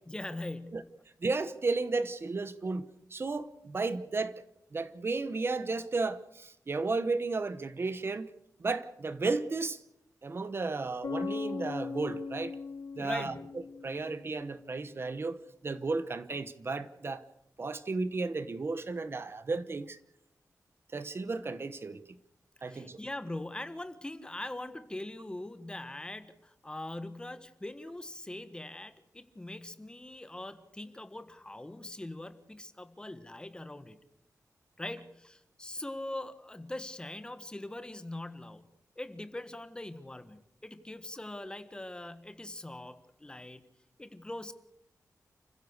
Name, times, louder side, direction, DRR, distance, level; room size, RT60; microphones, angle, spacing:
voice 1, 0.1-0.9 13.0-13.5 22.7-34.0 34.8-38.7 39.0-43.7 44.0-44.5, left 1 dB, 15° left, 11 dB, 1.5 m, -42 dB
voice 2, 1.2-2.8 3.1-4.3 4.7-8.3 8.6-9.8 10.2-12.6 13.0-13.3 13.8-15.4 15.6-17.2 17.6-20.0 20.9-22.0 22.6-23.0, right 3 dB, 40° right, 13 dB, 1.0 m, -33 dB
Bass guitar, 11.0-14.7, left 5 dB, 70° left, 1.9 m, -39 dB
29.5 x 16.0 x 6.6 m, 0.79 s
wide cardioid pair, 165°, 6 cm